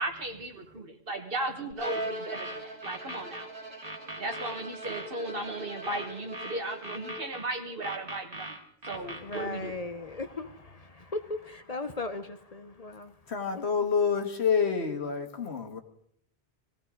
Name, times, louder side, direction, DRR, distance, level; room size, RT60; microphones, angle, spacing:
voice 1, 0.0-3.5 4.2-9.8, right 2 dB, 60° right, 1.8 m, -36 dB
sound 1, 1.7-3.5 3.8-5.1 5.8-7.5 7.8-9.5, right 1 dB, 35° right, 2.1 m, -40 dB
Bowed string instrument, 1.8-7.5, right 1 dB, 75° right, 2.2 m, -41 dB
voice 2, 8.9-13.1 13.5-13.7, left 3 dB, 40° left, 0.8 m, -38 dB
voice 3, 13.3-15.8, left 6 dB, 85° left, 1.8 m, -28 dB
20.0 x 16.0 x 3.8 m
omnidirectional pair, 1.1 m